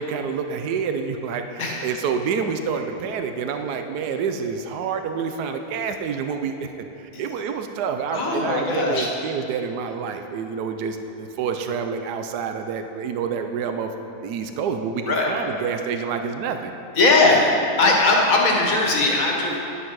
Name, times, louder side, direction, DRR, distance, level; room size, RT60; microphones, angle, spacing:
voice 1, 0.0-13.9 14.2-16.7, right 6 dB, 90° right, 6 dB, 1.2 m, -28 dB
voice 2, 8.1-9.1 15.1-15.3 17.0-19.6, left 2 dB, 60° left, -1 dB, 1.8 m, -19 dB
10.0 x 10.0 x 4.7 m, 2.9 s
omnidirectional pair, 1.7 m